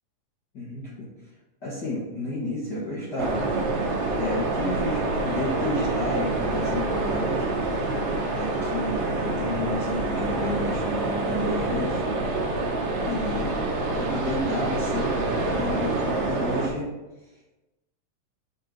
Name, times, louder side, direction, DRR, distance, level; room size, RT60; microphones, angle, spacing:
voice 1, 0.5-1.1 1.6-3.4 4.1-7.9 8.3-12.0 13.0-13.5 13.9-15.2 15.6-16.9, left 1 dB, 55° left, -8 dB, 1.2 m, -31 dB
sound 1, 3.2-16.7, right 2 dB, 65° right, 1.9 m, -27 dB
6.4 x 4.1 x 4.5 m, 1.1 s
omnidirectional pair, 3.9 m